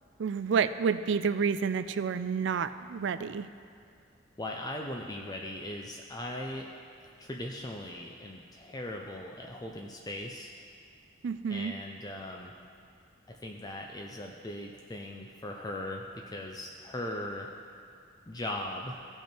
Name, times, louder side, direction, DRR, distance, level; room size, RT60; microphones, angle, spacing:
voice 1, 0.2-3.5 11.2-11.7, right 6 dB, 70° right, 13 dB, 0.4 m, -29 dB
voice 2, 4.4-6.7 7.2-10.5 11.5-12.6 13.3-17.5 18.3-19.0, left 1 dB, 20° left, 1 dB, 0.5 m, -39 dB
16.0 x 5.5 x 4.4 m, 2.3 s
head